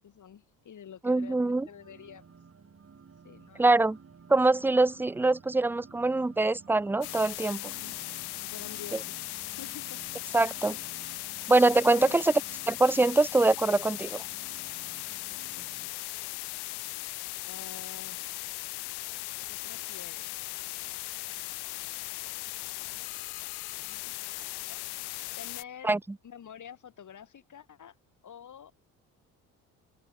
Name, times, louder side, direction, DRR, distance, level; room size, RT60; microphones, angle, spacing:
voice 1, 0.0-2.2 3.2-3.7 4.6-4.7 7.6-8.0 8.4-9.2 9.5-10.0 12.0-12.3 12.9-13.2 15.3-15.7 17.4-18.3 19.5-21.3 23.4-24.8 25.4-25.9 26.2-28.0 28.2-28.7, left 8 dB, 50° left, 4.6 m, -49 dB
voice 2, 1.0-1.7 3.6-4.0 4.3-7.7 10.3-10.8 11.5-12.3 12.7-14.2 25.8-26.0, right 2 dB, 5° right, 0.5 m, -24 dB
sound 1, 1.2-15.9, right 6 dB, 35° right, 6.6 m, -53 dB
sound 2, 7.0-25.6, left 22 dB, 75° left, 1.9 m, -38 dB
open air
supercardioid pair, 70°, 39 cm